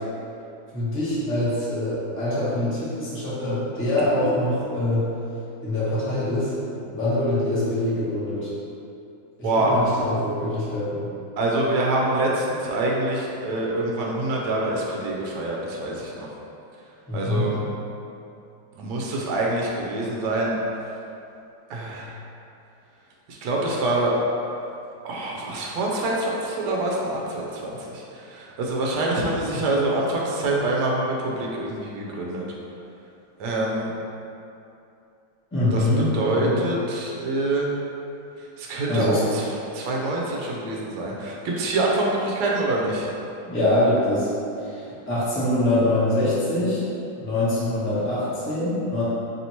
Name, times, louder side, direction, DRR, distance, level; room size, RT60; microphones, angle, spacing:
voice 1, 0.7-5.1 5.6-6.5 6.9-8.5 9.4-11.1 17.1-17.5 35.5-36.7 38.9-39.2 43.5-44.3 44.6-46.8 47.2-49.0, left 1 dB, 10° left, -11 dB, 0.5 m, -24 dB
voice 2, 9.4-9.7 11.4-16.3 17.1-17.6 18.7-20.6 21.7-22.1 23.3-24.1 25.0-32.5 33.4-33.9 35.7-35.9 36.1-37.7 38.6-39.5 39.7-43.1, right 2 dB, 70° right, -3 dB, 1.1 m, -25 dB
3.3 x 2.9 x 4.2 m, 2.7 s
omnidirectional pair, 2.2 m